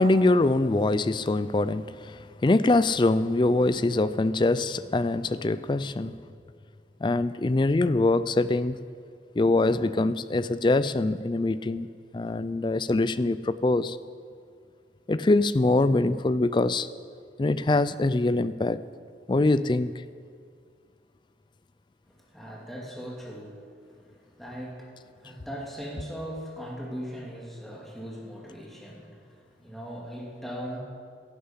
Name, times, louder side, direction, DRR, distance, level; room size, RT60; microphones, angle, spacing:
voice 1, 0.0-6.1 7.0-8.8 9.4-11.9 12.1-14.0 15.1-16.9 17.4-18.8 19.3-19.9, left 2 dB, 25° left, 15 dB, 0.4 m, -23 dB
voice 2, 22.1-30.8, equal, ahead, -3 dB, 2.3 m, -39 dB
11.5 x 11.0 x 8.1 m, 2.1 s
head